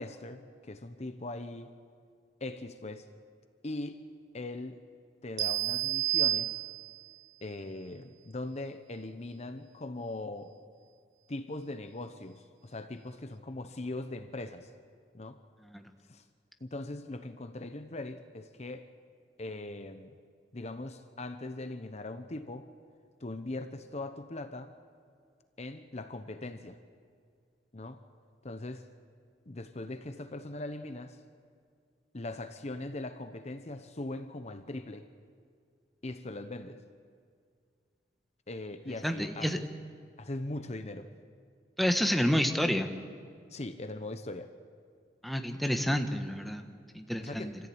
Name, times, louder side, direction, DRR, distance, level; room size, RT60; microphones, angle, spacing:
voice 1, 0.0-1.7 2.4-3.1 3.6-4.0 4.3-4.8 5.2-6.6 7.4-10.5 11.3-14.7 15.1-15.4 16.1-16.2 16.6-18.9 19.4-20.1 20.5-22.7 23.2-24.7 25.6-26.8 27.7-28.0 28.4-28.9 29.5-31.2 32.1-35.1 36.0-36.8 38.5-39.7 40.2-41.1 43.5-44.5 47.2-47.6, left 2 dB, 40° left, 9 dB, 0.9 m, -40 dB
sound 1, 5.4-7.1, right 14 dB, 85° right, 1.1 m, -30 dB
voice 2, 39.0-39.6 41.8-42.9 45.2-46.6 46.9-47.5, equal, ahead, 5 dB, 1.2 m, -29 dB
27.0 x 15.0 x 8.7 m, 2.2 s
head